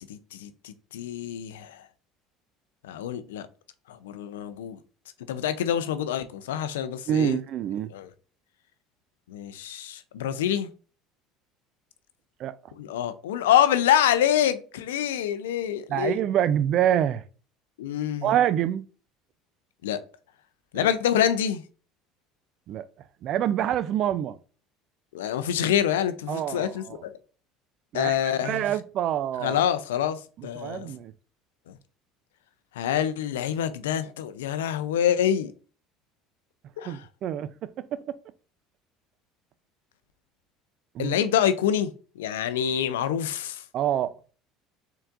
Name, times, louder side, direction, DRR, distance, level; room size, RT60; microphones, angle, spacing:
voice 1, 0.1-1.8 2.8-3.5 3.9-4.8 5.3-7.4 7.9-8.1 9.3-10.7 12.8-16.2 17.8-18.3 19.8-20.0 20.7-21.6 25.1-27.1 27.9-28.6 29.4-30.9 31.7-31.8 32.8-35.5 36.8-37.0 41.0-41.9 42.2-43.6, left 10 dB, 85° left, 0.4 m, -26 dB
voice 2, 7.1-7.9 12.4-12.5 15.9-17.2 18.2-18.8 20.7-20.9 22.7-22.9 23.2-24.4 26.3-27.0 27.9-28.2 28.4-29.6 30.4-31.1 36.9-37.5 37.9-38.2 40.9-41.2 43.7-44.1, right 10 dB, 55° right, 0.4 m, -26 dB
4.4 x 3.8 x 2.4 m
hypercardioid pair, 80°, 0 cm